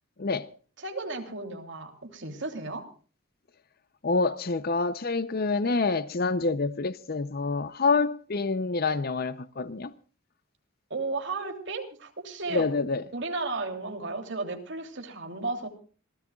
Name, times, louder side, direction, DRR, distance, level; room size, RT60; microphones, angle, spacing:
voice 1, 0.2-0.5 4.0-9.9 12.5-13.0, left 3 dB, 45° left, 0.6 m, -27 dB
voice 2, 0.8-2.8 10.9-12.7 13.1-15.7, right 3 dB, 55° right, 3.0 m, -34 dB
26.5 x 16.5 x 2.4 m
head